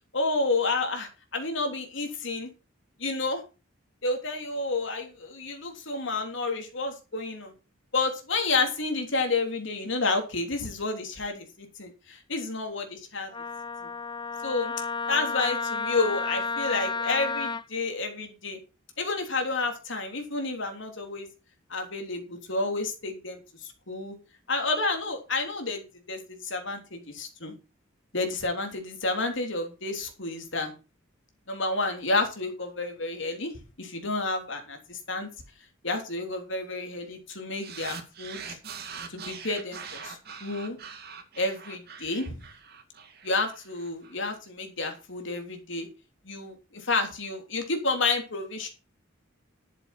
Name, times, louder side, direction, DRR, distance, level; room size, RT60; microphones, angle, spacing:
voice 1, 0.1-2.5 3.0-3.4 4.0-7.5 7.9-13.3 13.8-13.9 14.4-14.7 15.1-18.6 19.0-21.3 21.7-24.1 24.5-25.8 26.1-27.5 28.1-30.7 31.5-33.5 33.8-35.3 35.8-38.6 39.1-40.8 41.4-42.4 43.2-45.9 46.2-48.7, left 3 dB, 65° left, 4 dB, 3.3 m, -30 dB
Wind instrument woodwind instrument, 13.3-17.6, left 4 dB, 25° left, 0.5 m, -32 dB
sound 1, 37.6-44.1, right 6 dB, 55° right, 2.3 m, -42 dB
11.5 x 7.5 x 6.0 m, 0.32 s
head